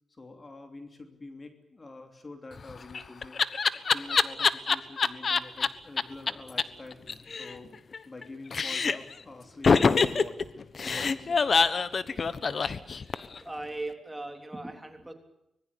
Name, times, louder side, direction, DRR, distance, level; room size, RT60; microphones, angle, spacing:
voice 1, 0.1-7.0 7.3-10.5 10.8-11.4 14.0-14.1, left 2 dB, 30° left, 6 dB, 3.0 m, -46 dB
Laughter, 2.6-5.7 6.0-6.1 6.3-6.4 6.6-6.7 6.9-8.2 8.5-9.1 9.6-13.4, left 5 dB, 45° left, 1.1 m, -25 dB
voice 2, 13.4-15.1, right 2 dB, 10° right, 5 dB, 3.4 m, -38 dB
24.5 x 20.5 x 8.5 m, 0.82 s
cardioid pair, 100°, 0 cm